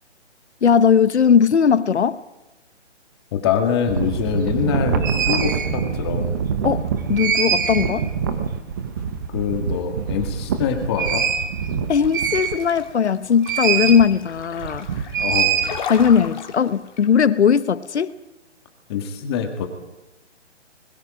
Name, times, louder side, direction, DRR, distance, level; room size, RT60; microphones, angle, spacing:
voice 1, 0.6-2.2 6.6-8.1 11.9-14.9 15.9-18.1, left 7 dB, 65° left, 1.2 m, -18 dB
voice 2, 3.3-6.3 9.3-11.3 15.2-15.6 18.9-19.7, left 7 dB, 20° left, 1.9 m, -24 dB
sound 1, 3.9-12.9 13.4-14.1 14.4-16.2, right 7 dB, 15° right, 0.8 m, -24 dB
sound 2, 11.9-17.1, left 6 dB, 40° left, 2.5 m, -36 dB
25.0 x 21.5 x 5.1 m
hypercardioid pair, 160°, 36 cm